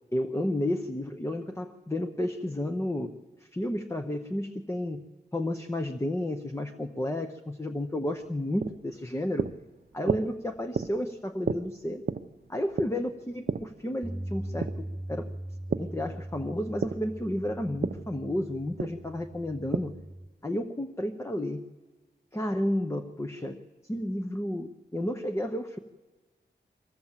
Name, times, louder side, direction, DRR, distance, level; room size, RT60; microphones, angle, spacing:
voice 1, 0.1-3.1 3.5-5.1 5.3-9.5 9.9-12.0 12.5-15.3 15.8-20.0 20.4-21.6 22.3-23.6 23.9-25.8, left 1 dB, 15° left, 6 dB, 0.9 m, -32 dB
sound 1, 8.1-16.0 16.3-20.1, right 5 dB, 55° right, 0.7 m, -34 dB
Bass guitar, 14.0-20.3, right 1 dB, 10° right, 0.6 m, -40 dB
23.5 x 16.0 x 7.4 m, 1.3 s
wide cardioid pair, 80°, 19 cm